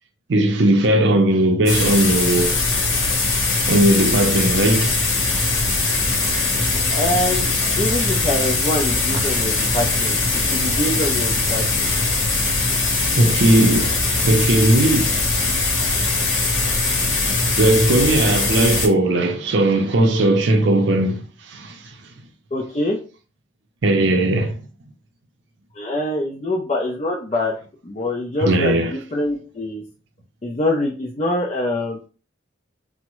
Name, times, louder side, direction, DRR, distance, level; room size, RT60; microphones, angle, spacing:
voice 1, 0.3-2.6 3.7-5.0 13.2-14.0 14.2-15.1 17.6-21.9 23.8-24.6 28.4-28.9, right 1 dB, 60° right, 0.5 m, -18 dB
sound 1, 1.7-18.9, left 3 dB, 75° left, 0.9 m, -21 dB
voice 2, 6.9-7.5 7.8-11.9 22.5-23.0 25.7-27.6 27.8-29.8 30.4-32.0, left 1 dB, 30° left, 0.4 m, -24 dB
3.4 x 2.0 x 3.0 m
head